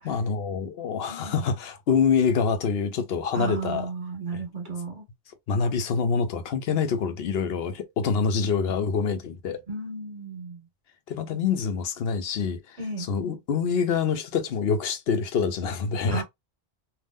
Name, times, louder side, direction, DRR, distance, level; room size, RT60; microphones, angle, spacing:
voice 1, 0.0-3.9 4.3-4.4 5.5-9.6 11.1-12.8 13.1-16.2, left 6 dB, 75° left, 0.9 m, -26 dB
voice 2, 1.1-1.4 3.3-5.1 9.7-10.7 12.8-13.1 16.1-16.2, right 4 dB, 45° right, 1.6 m, -34 dB
3.6 x 2.4 x 2.4 m
omnidirectional pair, 1.1 m